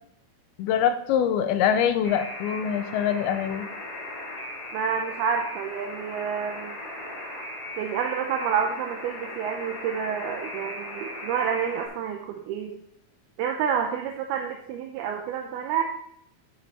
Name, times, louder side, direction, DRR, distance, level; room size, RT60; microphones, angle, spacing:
voice 1, 0.6-3.7, left 8 dB, 85° left, 9 dB, 2.6 m, -24 dB
Alarm, 2.0-11.9, left 1 dB, 25° left, 3.5 m, -38 dB
voice 2, 4.7-6.8 7.8-12.8 13.4-15.8, right 7 dB, 80° right, 2 dB, 2.7 m, -29 dB
9.6 x 7.5 x 4.2 m, 0.74 s
omnidirectional pair, 4.5 m